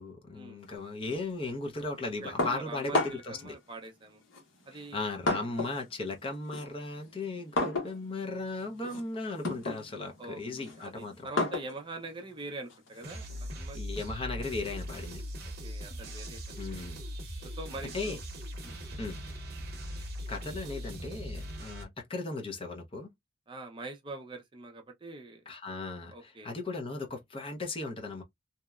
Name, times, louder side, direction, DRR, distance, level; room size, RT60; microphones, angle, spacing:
voice 1, 0.0-3.6 4.7-11.3 13.7-15.2 16.6-17.0 17.9-18.2 19.0-19.2 19.9-23.1 25.5-28.2, left 3 dB, 30° left, 0.5 m, -37 dB
voice 2, 2.2-4.2 4.7-5.0 10.2-13.2 13.5-13.8 15.6-16.8 17.4-18.2 18.6-18.8 23.5-25.4 26.1-26.5, right 2 dB, 25° right, 0.5 m, -44 dB
sound 1, 2.4-3.4 4.3-5.9 6.2-13.5, left 2 dB, 80° left, 0.9 m, -34 dB
sound 2, 13.0-21.8, equal, 50° right, 0.8 m, -40 dB
2.8 x 2.1 x 2.3 m
head